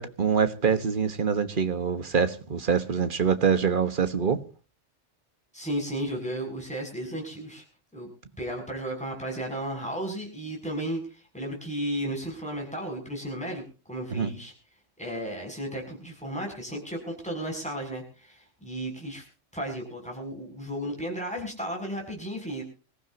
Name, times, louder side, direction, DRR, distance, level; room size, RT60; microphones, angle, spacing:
voice 1, 0.0-4.4 14.1-14.3, right 6 dB, 45° right, 1.4 m, -25 dB
voice 2, 5.5-7.6 7.9-8.1 8.4-14.5 15.0-19.2 19.5-22.6, right 1 dB, 5° left, 7.1 m, -34 dB
25.5 x 15.0 x 2.8 m
omnidirectional pair, 1.3 m